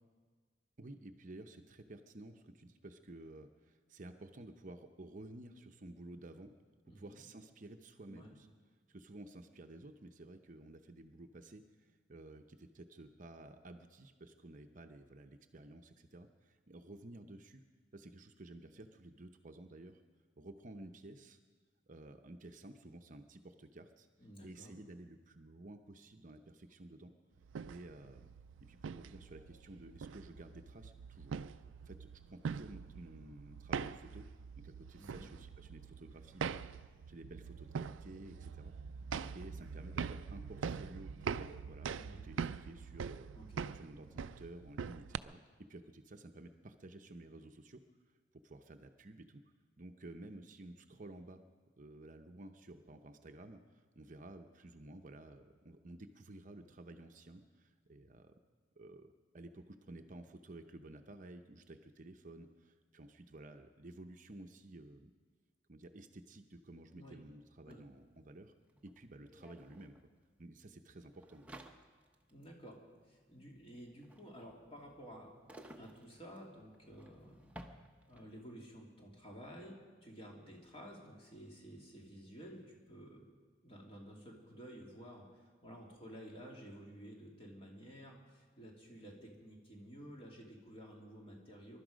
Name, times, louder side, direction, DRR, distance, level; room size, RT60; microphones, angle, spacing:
voice 1, 0.8-6.5 6.8-8.5 8.9-17.6 17.9-20.0 20.4-21.4 21.9-24.1 24.4-27.1 27.7-28.3 28.6-31.3 31.8-34.3 34.6-38.7 39.3-43.3 43.7-45.4 45.7-47.8 48.1-49.4 49.8-51.4 51.8-58.3 58.8-65.1 65.7-68.5 68.8-70.1 70.4-71.5, right 2 dB, 45° right, 6 dB, 0.8 m, -53 dB
voice 2, 6.9-7.2 8.1-8.3 24.2-24.8 35.0-35.3 42.0-42.3 43.4-43.7 66.9-67.2 67.7-67.9 72.3-72.8 73.0-75.3 75.8-77.5 78.1-83.3 83.6-91.8, equal, 30° left, -1 dB, 2.7 m, -53 dB
sound 1, 27.4-45.2, right 6 dB, 90° right, 0.4 m, -43 dB
Closing a drawer, 67.7-67.8 68.0-78.4, right 1 dB, 5° right, 0.9 m, -58 dB
22.0 x 12.0 x 5.2 m, 1.5 s
head